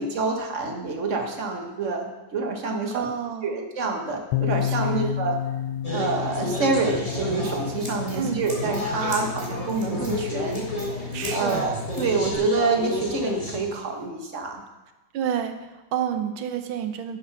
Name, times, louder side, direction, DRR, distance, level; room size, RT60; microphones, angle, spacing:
voice 1, 0.0-3.1 3.4-5.4 5.9-10.7 11.3-11.7 12.0-14.6, right 4 dB, 40° right, 3 dB, 1.5 m, -27 dB
voice 2, 2.9-3.6 4.8-5.2 8.2-8.5 11.1-11.7 15.1-17.2, right 8 dB, 80° right, 7 dB, 1.6 m, -29 dB
sound 1, 4.3-12.0, left 11 dB, 85° left, 1.4 m, -32 dB
sound 2, 5.8-13.6, left 1 dB, 20° left, 1.5 m, -31 dB
Scissors, 6.9-12.3, left 4 dB, 15° right, 2.7 m, -37 dB
10.0 x 7.6 x 6.0 m, 1.1 s
omnidirectional pair, 2.2 m